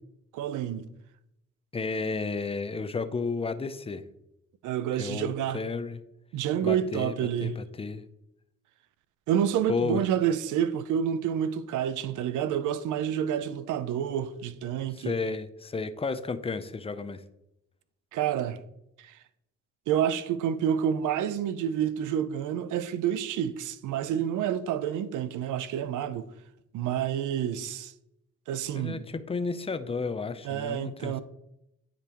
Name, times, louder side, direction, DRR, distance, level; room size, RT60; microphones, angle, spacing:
voice 1, 0.3-0.9 4.6-5.6 6.3-7.5 9.3-15.1 18.1-18.6 19.0-19.1 19.9-26.3 26.7-27.9 28.5-29.0 30.4-31.2, right 9 dB, 85° right, 0.6 m, -28 dB
voice 2, 1.7-4.0 5.0-6.0 6.6-7.1 7.4-8.0 9.7-10.0 14.9-17.2 28.7-31.2, left 4 dB, 20° left, 0.6 m, -32 dB
9.7 x 5.2 x 3.0 m
cardioid pair, 90°, 30 cm